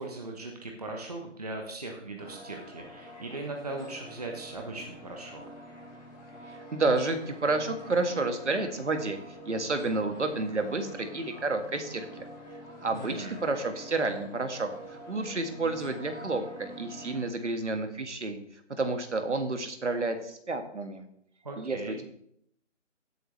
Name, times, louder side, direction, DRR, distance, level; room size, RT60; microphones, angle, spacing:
voice 1, 0.0-5.4 12.9-13.3 21.4-22.0, right 2 dB, 30° right, 1 dB, 1.1 m, -39 dB
sound 1, 2.2-17.3, equal, 35° left, 4.4 m, -46 dB
voice 2, 6.5-9.2 9.5-12.2 12.8-18.4 18.8-21.0 21.6-22.0, right 3 dB, 65° right, 6 dB, 1.8 m, -30 dB
17.0 x 7.8 x 3.3 m, 0.70 s
figure-of-eight pair, 175°, 37 cm